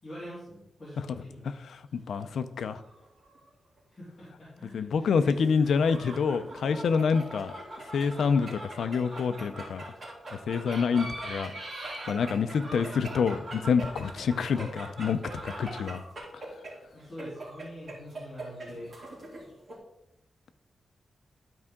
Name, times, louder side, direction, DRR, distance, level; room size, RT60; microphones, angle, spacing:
voice 1, 0.0-1.5 3.9-5.4 12.5-12.7 14.2-14.4 16.9-18.9, equal, 20° left, -11 dB, 3.1 m, -45 dB
voice 2, 1.7-2.8 4.7-7.5 7.9-9.8 10.5-11.5 12.1-16.0 16.3-16.4, left 5 dB, 90° left, 11 dB, 0.5 m, -27 dB
sound 1, 2.0-3.4 3.8-3.9 5.4-19.7, right 1 dB, 40° right, 2.9 m, -41 dB
12.0 x 4.8 x 3.6 m, 0.83 s
wide cardioid pair, 165°, 0 cm